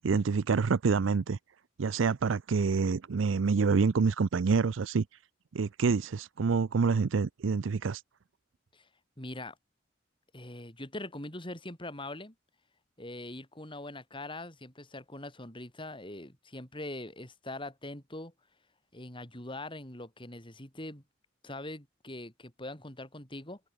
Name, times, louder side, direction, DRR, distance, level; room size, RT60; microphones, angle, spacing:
voice 1, 0.0-1.4 1.8-5.0 5.5-8.0, right 5 dB, 75° right, 0.5 m, -27 dB
voice 2, 9.2-9.6 10.3-12.3 13.0-18.3 18.9-21.0 21.4-23.6, left 2 dB, 25° left, 5.1 m, -42 dB
head